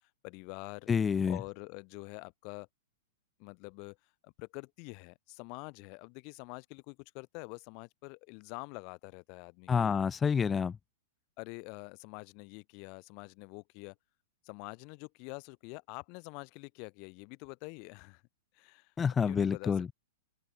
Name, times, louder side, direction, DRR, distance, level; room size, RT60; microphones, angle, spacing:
voice 1, 0.2-0.9 1.3-2.7 3.4-4.0 4.2-9.9 11.4-13.9 14.4-18.2 18.5-19.9, left 36 dB, 45° left, 4.7 m, -46 dB
voice 2, 0.9-1.4 9.7-10.8 19.0-19.9, left 6 dB, 15° left, 1.8 m, -28 dB
open air
hypercardioid pair, 125°, 0 cm